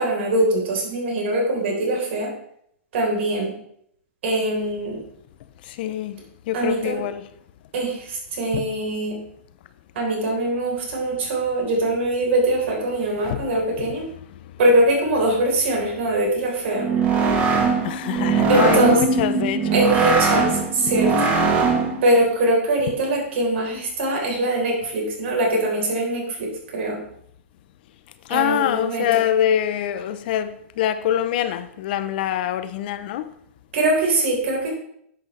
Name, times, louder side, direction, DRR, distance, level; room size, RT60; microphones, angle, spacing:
voice 1, 0.0-2.3 2.9-3.5 4.2-5.0 6.5-7.0 7.7-9.2 10.0-14.1 14.6-16.9 18.5-19.0 19.7-21.3 22.0-27.0 28.3-29.1 33.7-34.7, right 1 dB, 60° right, 3.8 m, -22 dB
voice 2, 5.7-6.2 6.5-7.2 8.5-8.7 13.2-13.4 17.8-19.8 28.3-33.3, left 11 dB, 45° left, 0.6 m, -24 dB
sound 1, 16.7-22.0, right 4 dB, 20° right, 1.3 m, -21 dB
10.5 x 7.8 x 3.2 m
hypercardioid pair, 165°, 7 cm